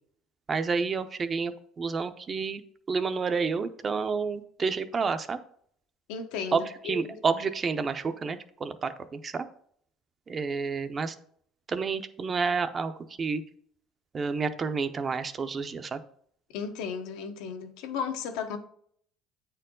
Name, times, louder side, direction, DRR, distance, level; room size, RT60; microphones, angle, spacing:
voice 1, 0.5-2.6 2.9-5.4 6.5-9.5 10.3-11.2 11.7-12.9 13.2-13.4 14.1-16.0, right 5 dB, 25° right, 0.6 m, -29 dB
voice 2, 6.1-7.1 16.5-18.6, left 6 dB, 80° left, 1.0 m, -34 dB
8.8 x 4.5 x 3.8 m
cardioid pair, 145°, 0 cm